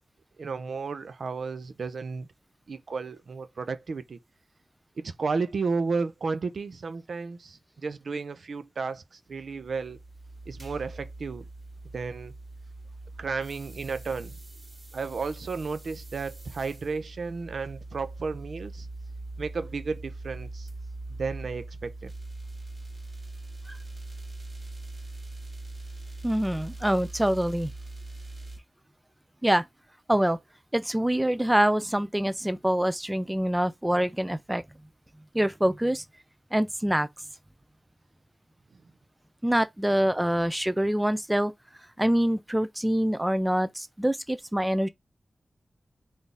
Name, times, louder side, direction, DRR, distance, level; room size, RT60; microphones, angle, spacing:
voice 1, 0.4-2.3 2.7-4.2 5.0-10.0 10.5-11.5 11.9-12.3 13.2-14.3 14.9-18.9 19.4-20.7 21.2-22.1, right 4 dB, 75° right, 0.5 m, -33 dB
sound 1, 9.3-28.6, right 2 dB, 40° right, 1.9 m, -42 dB
voice 2, 26.2-27.7 29.4-29.6 30.1-30.4 30.7-34.6 35.3-36.0 36.5-37.1 39.4-41.5 41.8-44.9, right 1 dB, 10° right, 0.4 m, -25 dB
3.9 x 2.6 x 3.4 m
wide cardioid pair, 95°, 0 cm